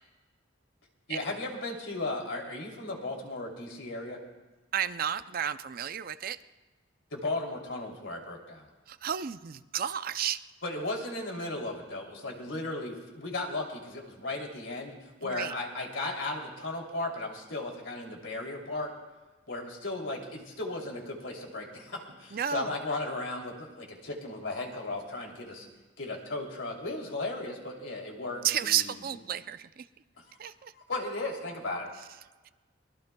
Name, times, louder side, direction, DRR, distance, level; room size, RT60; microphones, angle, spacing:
voice 1, 1.1-4.2 7.1-8.7 10.6-18.9 19.5-25.7 26.0-29.2 30.3-30.5 30.9-31.9, left 2 dB, 85° left, 0 dB, 3.0 m, -36 dB
voice 2, 4.7-6.4 8.9-10.4 15.2-15.5 22.3-22.7 28.4-29.9 30.4-30.7, right 9 dB, 50° right, 12 dB, 0.5 m, -32 dB
23.5 x 20.0 x 2.3 m, 1.2 s
head